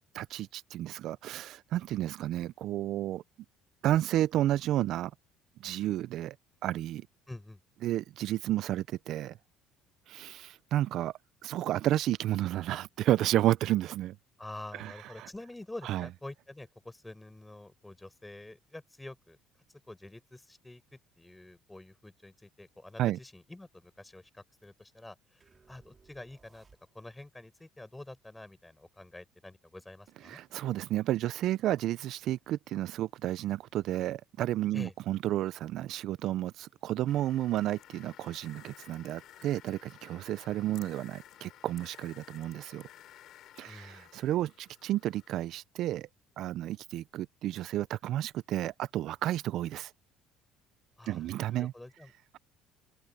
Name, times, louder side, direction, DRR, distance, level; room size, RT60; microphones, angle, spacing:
voice 1, 0.0-3.2 3.8-5.1 5.6-6.4 6.6-7.1 7.8-9.4 10.1-11.1 11.4-14.2 14.7-15.3 15.8-16.1 23.0-23.2 30.3-42.9 43.6-46.1 46.4-49.9 51.1-51.7, right 13 dB, 60° right, 0.3 m, -31 dB
voice 2, 7.3-7.6 14.4-19.4 19.9-26.7 26.9-30.4 34.7-34.9 43.6-44.1 51.0-52.1, left 2 dB, 10° left, 5.6 m, -47 dB
sound 1, 25.4-27.3, right 5 dB, 25° right, 3.2 m, -63 dB
sound 2, 37.1-45.3, left 12 dB, 55° left, 4.9 m, -55 dB
open air
cardioid pair, 130°, 0 cm